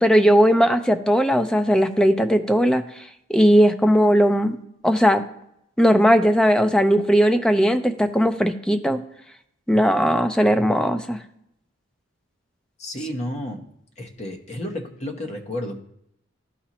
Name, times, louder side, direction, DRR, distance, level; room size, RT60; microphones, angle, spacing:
voice 1, 0.0-2.8 3.3-4.6 4.8-5.2 5.8-9.0 9.7-11.2, equal, 5° left, 7 dB, 0.5 m, -18 dB
voice 2, 12.8-13.6 14.0-15.8, left 1 dB, 35° left, 2 dB, 1.1 m, -31 dB
12.0 x 4.2 x 3.0 m, 0.76 s
head